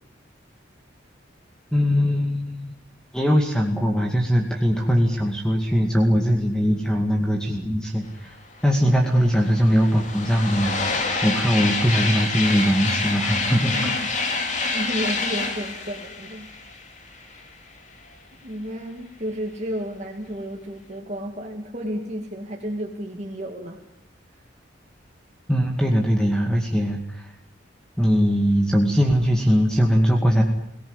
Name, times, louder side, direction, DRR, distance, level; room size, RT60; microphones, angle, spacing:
voice 1, 1.7-2.7 3.1-8.3 8.6-14.0 25.5-27.3 28.0-30.4, equal, 5° left, 1 dB, 2.1 m, -21 dB
sound 1, 8.6-8.7 8.9-17.5, left 3 dB, 40° left, 3.3 m, -27 dB
voice 2, 13.5-14.0 14.7-16.5 17.2-17.3 18.4-23.8, equal, 35° right, 1 dB, 2.4 m, -32 dB
23.0 x 18.0 x 9.8 m, 0.76 s
head